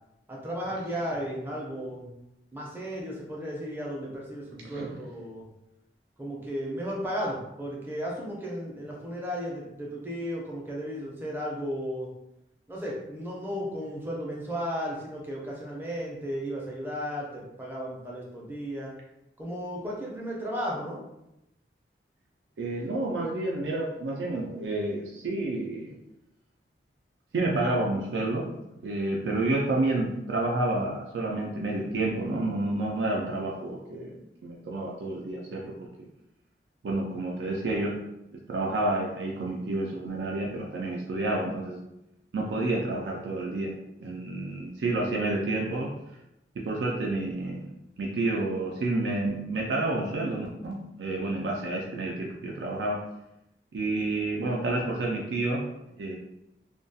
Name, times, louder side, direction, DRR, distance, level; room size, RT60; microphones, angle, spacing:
voice 1, 0.3-2.1 2.5-5.4 6.2-12.1 12.7-18.9 19.4-21.0, equal, 10° right, -3 dB, 0.5 m, -34 dB
voice 2, 4.6-5.0 22.6-25.9 27.3-28.5 28.8-34.1 34.4-36.1 36.8-38.0 38.5-41.8 42.3-43.7 44.0-45.9 46.6-47.7 48.0-53.0 53.7-55.6 56.0-56.1, right 2 dB, 80° right, -2 dB, 0.3 m, -29 dB
2.3 x 2.2 x 2.6 m, 0.88 s
head